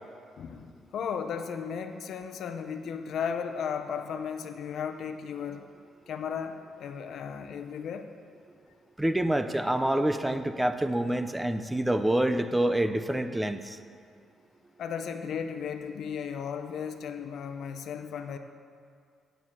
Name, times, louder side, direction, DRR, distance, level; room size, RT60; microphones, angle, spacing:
voice 1, 0.4-5.7 6.1-8.1 14.8-18.4, left 7 dB, 70° left, 8 dB, 0.8 m, -35 dB
voice 2, 9.0-13.8, right 1 dB, 10° right, 9 dB, 0.6 m, -27 dB
9.7 x 8.1 x 7.3 m, 2.2 s
cardioid pair, 90°, 0 cm